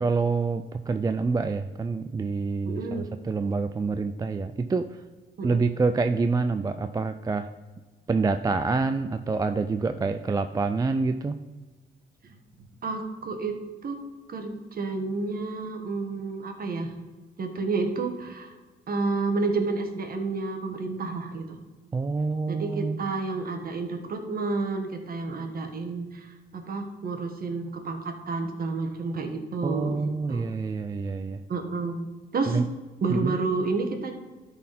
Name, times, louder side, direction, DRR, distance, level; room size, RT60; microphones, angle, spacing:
voice 1, 0.0-5.0 5.4-7.5 8.1-11.4 21.9-23.0 29.6-31.4 32.5-32.6 33.1-33.3, right 4 dB, 20° right, 9 dB, 0.3 m, -27 dB
voice 2, 2.6-3.1 5.4-5.6 12.2-12.4 12.8-14.0 14.3-16.9 17.4-18.6 18.9-21.6 22.5-30.5 31.5-32.1 32.3-32.6 33.0-34.1, right 3 dB, 50° right, 4 dB, 1.3 m, -30 dB
12.5 x 4.2 x 4.2 m, 1.3 s
cardioid pair, 90°, 20 cm